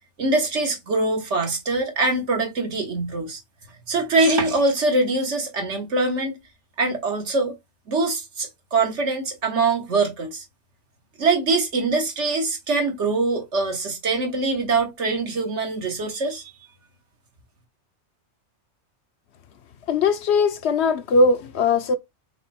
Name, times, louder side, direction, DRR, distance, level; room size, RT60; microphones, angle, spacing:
voice 1, 0.2-3.4 3.9-6.4 6.8-7.5 7.9-10.4 11.2-16.4, right 3 dB, 75° right, 1.6 m, -23 dB
voice 2, 19.9-22.0, left 3 dB, 70° left, 0.9 m, -20 dB
5.2 x 2.1 x 4.2 m
omnidirectional pair, 1.2 m